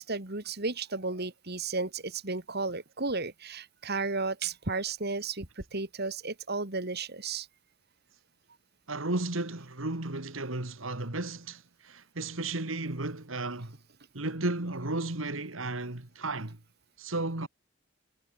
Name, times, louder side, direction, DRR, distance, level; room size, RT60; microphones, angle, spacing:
voice 1, 0.0-7.5, right 3 dB, 55° right, 3.1 m, -33 dB
voice 2, 8.9-13.8 14.1-16.6 17.0-17.5, right 2 dB, 85° right, 2.5 m, -34 dB
head